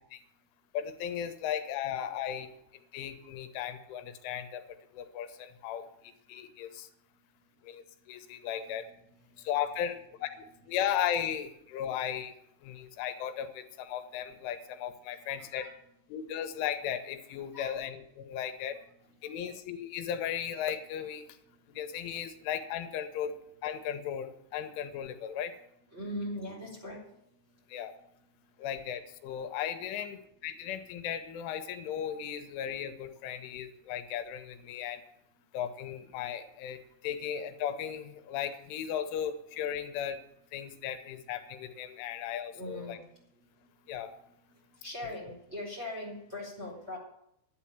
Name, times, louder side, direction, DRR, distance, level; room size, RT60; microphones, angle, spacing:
voice 1, 0.7-2.5 2.9-4.6 4.9-6.9 7.6-8.8 9.4-12.3 12.6-15.7 16.1-18.8 19.2-21.3 21.7-25.5 27.7-27.9 28.6-35.0 35.5-40.2 40.5-43.0 43.9-44.1, left 9 dB, 85° left, 8 dB, 3.3 m, -36 dB
voice 2, 8.6-9.2 15.4-15.7 17.5-17.7 19.3-19.5 21.5-21.6 25.9-27.0 27.8-27.9 42.5-43.0 44.8-47.0, left 1 dB, 15° right, -4 dB, 3.6 m, -41 dB
12.0 x 8.5 x 8.6 m, 0.76 s
omnidirectional pair, 5.7 m